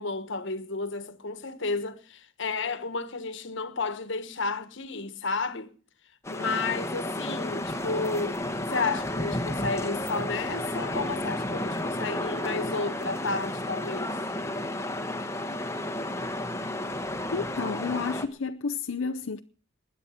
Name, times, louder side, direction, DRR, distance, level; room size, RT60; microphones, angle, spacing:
voice 1, 0.0-5.8 6.3-8.4 8.7-14.1, left 3 dB, 65° left, 1.4 m, -32 dB
sound 1, 6.2-18.3, left 1 dB, 15° left, 1.1 m, -32 dB
voice 2, 17.3-19.4, left 4 dB, 80° left, 0.6 m, -31 dB
20.0 x 10.0 x 5.8 m
head